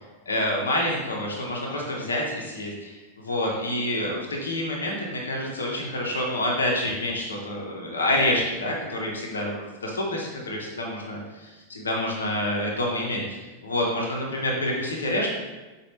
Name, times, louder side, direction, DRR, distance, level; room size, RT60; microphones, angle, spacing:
voice 1, 0.3-15.3, left 1 dB, 70° left, -2 dB, 0.7 m, -28 dB
5.0 x 2.4 x 3.1 m, 1.2 s
figure-of-eight pair, 90°, 0 cm